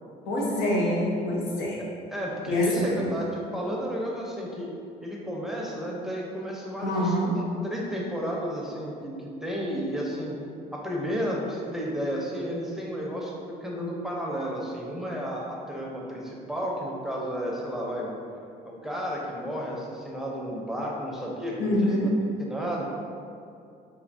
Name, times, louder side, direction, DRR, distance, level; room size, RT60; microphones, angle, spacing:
voice 1, 0.3-1.8 2.5-3.2 6.8-7.3 21.6-22.1, equal, 90° left, -3 dB, 0.8 m, -26 dB
voice 2, 2.1-4.7 5.0-10.4 10.7-18.2 18.6-21.7 22.0-22.1 22.5-22.8, equal, ahead, -3 dB, 0.5 m, -32 dB
4.3 x 2.7 x 2.6 m, 2.5 s
cardioid pair, 110°, 17 cm